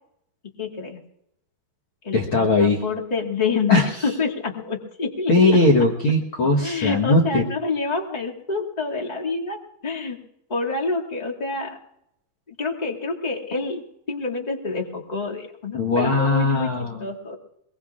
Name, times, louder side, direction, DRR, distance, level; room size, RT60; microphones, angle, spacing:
voice 1, 0.6-1.0 2.0-5.3 6.6-10.2 10.5-11.8 12.5-16.7 17.0-17.3, left 4 dB, 20° left, -3 dB, 1.2 m, -27 dB
voice 2, 2.1-2.8 3.7-3.9 5.3-7.4 15.7-17.1, left 2 dB, 75° left, 0 dB, 1.2 m, -19 dB
23.5 x 22.5 x 2.5 m, 0.79 s
omnidirectional pair, 4.5 m